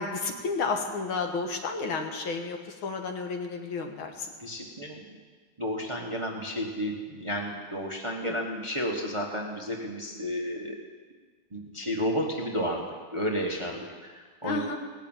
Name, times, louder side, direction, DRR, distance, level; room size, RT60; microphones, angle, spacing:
voice 1, 0.0-2.6 2.8-4.3 8.2-8.4 14.4-14.8, left 4 dB, 75° left, 3 dB, 2.1 m, -31 dB
voice 2, 4.4-5.0 5.6-10.7 11.5-12.9 13.1-14.6, equal, 20° right, 0 dB, 1.0 m, -32 dB
18.0 x 6.7 x 8.9 m, 1.5 s
omnidirectional pair, 2.3 m